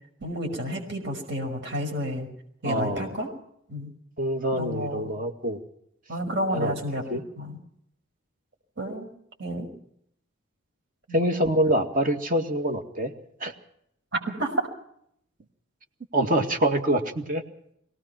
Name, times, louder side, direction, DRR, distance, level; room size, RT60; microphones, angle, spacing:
voice 1, 0.2-2.3 2.6-3.3 3.7-3.9 4.5-5.1 6.1-7.6 8.8-9.1 9.4-9.7 11.1-11.2 14.1-14.7, equal, 60° right, 3 dB, 5.7 m, -30 dB
voice 2, 2.6-3.1 4.2-5.6 6.5-6.7 7.1-7.2 11.1-13.1 13.4-13.5 16.1-17.4, right 1 dB, 45° right, 5 dB, 2.2 m, -25 dB
24.0 x 18.5 x 5.9 m, 0.71 s
head